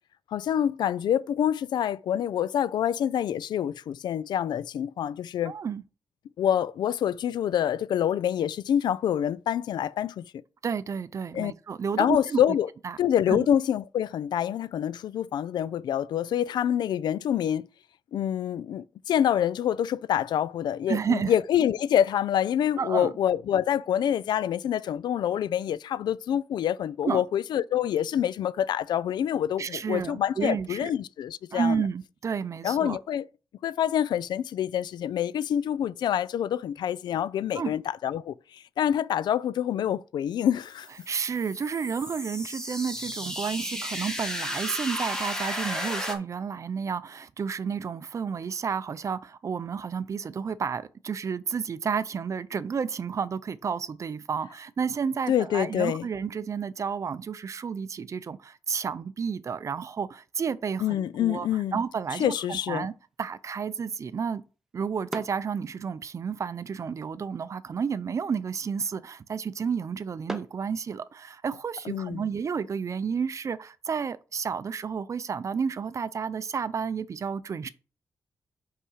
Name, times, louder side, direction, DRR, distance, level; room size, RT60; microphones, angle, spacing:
voice 1, 0.3-5.6 6.4-10.3 11.3-11.5 12.0-12.7 13.0-17.7 18.1-31.8 32.6-33.3 33.6-40.9 55.3-56.1 60.8-61.8 62.1-62.9 71.9-72.3, left 10 dB, 90° left, 0.3 m, -26 dB
voice 2, 5.5-5.8 10.6-12.6 12.8-13.0 13.3-13.5 20.9-21.3 22.8-23.1 27.0-27.2 29.6-30.9 31.5-33.0 37.5-37.7 41.1-61.5 61.7-62.9 63.2-64.4 64.7-77.7, right 6 dB, 45° right, 0.5 m, -31 dB
sound 1, 40.7-46.2, equal, 10° left, 1.5 m, -34 dB
sound 2, 61.3-71.4, right 1 dB, 5° right, 0.9 m, -48 dB
5.6 x 4.8 x 5.7 m
wide cardioid pair, 120°, 7 cm